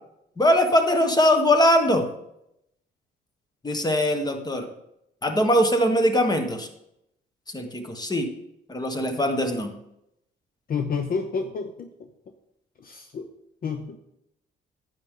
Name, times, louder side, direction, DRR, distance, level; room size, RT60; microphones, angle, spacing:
voice 1, 0.4-2.1 3.6-4.7 5.2-6.7 7.5-8.3 8.7-9.7, equal, 20° left, 6 dB, 1.3 m, -21 dB
voice 2, 10.7-11.9 12.8-13.3 13.6-14.0, left 5 dB, 45° left, 7 dB, 0.8 m, -29 dB
9.7 x 7.9 x 3.8 m, 0.81 s
cardioid pair, 90°, 20 cm